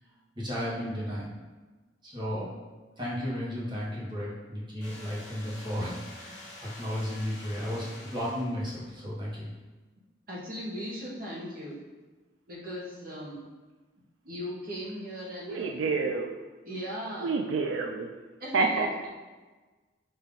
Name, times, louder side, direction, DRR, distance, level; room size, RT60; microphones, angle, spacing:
voice 1, 0.4-1.3 2.0-2.5 3.0-6.5 6.8-9.5, equal, 25° right, -6 dB, 1.2 m, -34 dB
sound 1, 4.8-8.8, left 1 dB, 15° left, 1.5 m, -47 dB
voice 2, 10.3-11.8 12.5-13.5 14.2-15.8 16.6-17.3 18.4-19.1, equal, 50° right, -5 dB, 1.1 m, -38 dB
voice 3, 15.5-16.4 17.2-18.1 18.5-18.9, right 4 dB, 90° right, 3 dB, 0.4 m, -28 dB
5.3 x 2.7 x 3.7 m, 1.3 s
head